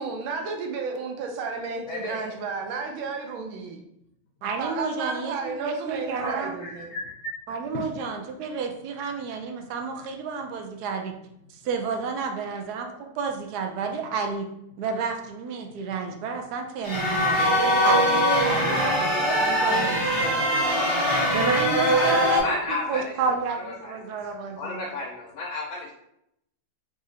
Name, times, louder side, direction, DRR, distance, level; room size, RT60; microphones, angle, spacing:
voice 1, 0.0-3.8 4.6-6.9, right 4 dB, 85° right, 3 dB, 1.5 m, -32 dB
voice 2, 1.9-2.4 6.2-6.3 6.6-7.3 21.9-23.1 23.6-24.2 24.6-25.9, left 2 dB, 80° left, -2 dB, 1.5 m, -33 dB
voice 3, 4.4-6.6 7.5-11.1 11.5-14.5 14.8-20.7 21.3-22.6 22.9-24.8, right 5 dB, 70° right, 4 dB, 0.9 m, -31 dB
sound 1, 16.8-22.4, equal, 25° left, 0.7 m, -22 dB
4.8 x 2.8 x 2.7 m, 0.78 s
omnidirectional pair, 2.2 m